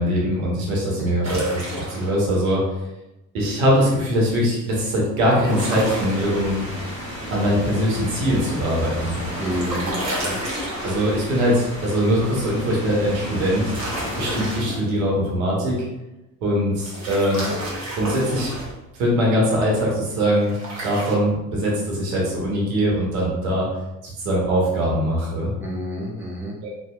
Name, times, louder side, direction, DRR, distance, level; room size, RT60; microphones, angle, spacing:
voice 1, 0.0-2.6 3.3-6.6 7.3-9.2 10.8-13.7 14.2-15.8 16.4-17.5 18.0-18.5 18.9-20.6 20.8-23.6 24.0-25.5 26.6-26.7, equal, 75° right, -4 dB, 0.8 m, -22 dB
sound 1, 1.2-2.2 5.3-6.4 8.9-11.3 13.5-14.9 16.8-18.8 20.4-21.1, right 1 dB, 40° right, 1.0 m, -31 dB
sound 2, 5.6-14.6, equal, 30° left, 1.3 m, -33 dB
voice 2, 9.4-10.4 25.6-26.5, equal, 5° right, -5 dB, 0.7 m, -29 dB
2.7 x 2.0 x 2.3 m, 0.96 s
figure-of-eight pair, 50°, 42 cm